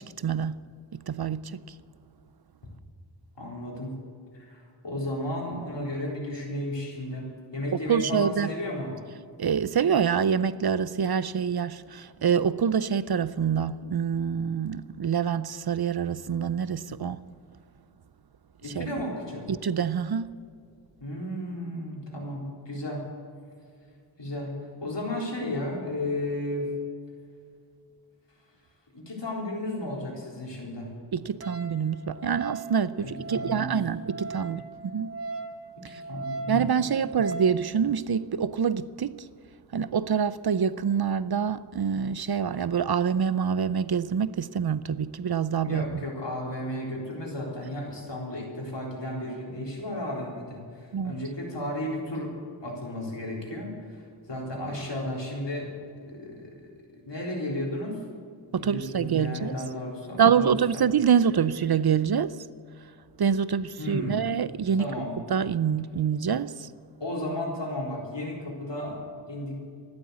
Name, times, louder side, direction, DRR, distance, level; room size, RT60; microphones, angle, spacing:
voice 1, 0.2-0.6 0.9-1.6 7.9-8.5 9.4-17.2 18.7-18.9 19.5-20.3 31.1-35.1 35.9-36.0 36.5-39.2 39.7-45.9 50.9-51.2 58.5-59.5 60.2-62.4 63.2-64.9 65.3-66.7, right 7 dB, 60° right, 0.6 m, -26 dB
voice 2, 3.4-4.0 4.3-8.9 18.6-19.5 21.0-23.0 24.2-24.5 24.8-26.7 28.9-30.9 33.0-33.7 35.7-36.6 45.6-52.3 52.6-55.7 56.0-56.7 57.1-58.0 58.6-60.8 63.8-64.2 64.7-65.1 67.0-69.5, left 1 dB, 75° left, 4.0 m, -34 dB
Wind instrument woodwind instrument, 31.4-37.6, right 3 dB, 35° right, 1.4 m, -39 dB
14.0 x 11.5 x 8.1 m
wide cardioid pair, 60°, 43 cm